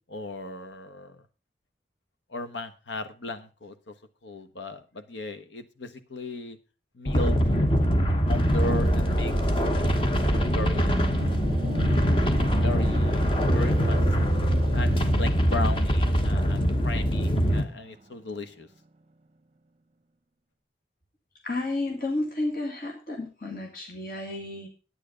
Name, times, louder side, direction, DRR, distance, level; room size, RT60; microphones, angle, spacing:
voice 1, 0.1-1.2 2.3-3.9 4.2-6.6 6.9-7.4 8.3-9.3 10.2-11.0 12.6-14.0 14.7-18.7, left 2 dB, 85° left, 9 dB, 1.2 m, -36 dB
sound 1, 7.1-17.6, equal, 30° left, 1.0 m, -23 dB
sound 2, 8.7-18.3 18.6-18.8, right 2 dB, 35° right, 0.7 m, -38 dB
voice 2, 21.4-24.7, left 2 dB, 50° left, 2 dB, 2.0 m, -31 dB
9.2 x 9.1 x 5.0 m, 0.33 s
head